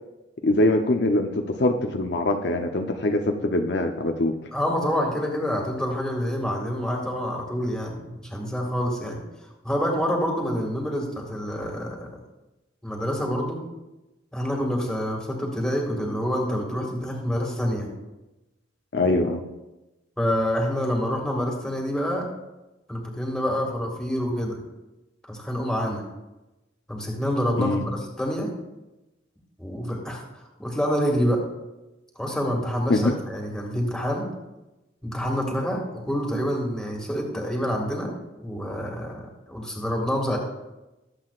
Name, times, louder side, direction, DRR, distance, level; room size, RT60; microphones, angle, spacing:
voice 1, 0.4-4.3 18.9-19.4 27.6-27.8 32.9-33.1, left 2 dB, 60° left, 4 dB, 0.7 m, -23 dB
voice 2, 4.5-9.2 9.6-12.2 12.8-13.6 14.3-17.9 20.2-22.3 22.9-24.6 25.3-26.0 26.9-28.5 29.6-30.2 30.6-31.4 32.2-34.3 35.0-38.1 38.4-40.4, equal, 5° left, -1 dB, 2.0 m, -27 dB
19.0 x 7.9 x 2.5 m, 1.0 s
head